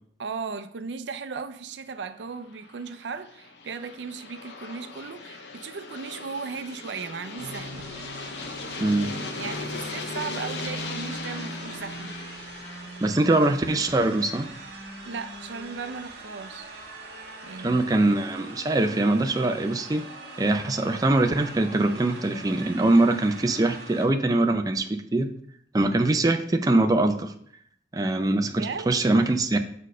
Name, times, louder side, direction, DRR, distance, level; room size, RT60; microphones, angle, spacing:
voice 1, 0.2-7.9 9.3-12.2 15.1-16.7 17.4-18.1 28.6-28.9, right 5 dB, 80° right, 0.5 m, -36 dB
Aircraft, 2.4-15.2, left 4 dB, 75° left, 0.8 m, -39 dB
sound 1, 7.4-24.1, right 2 dB, 60° right, 1.8 m, -41 dB
voice 2, 8.8-9.1 13.0-14.5 17.6-20.1 20.4-25.3 25.7-27.3 27.9-29.6, right 2 dB, 20° right, 0.4 m, -23 dB
6.2 x 4.3 x 5.5 m
head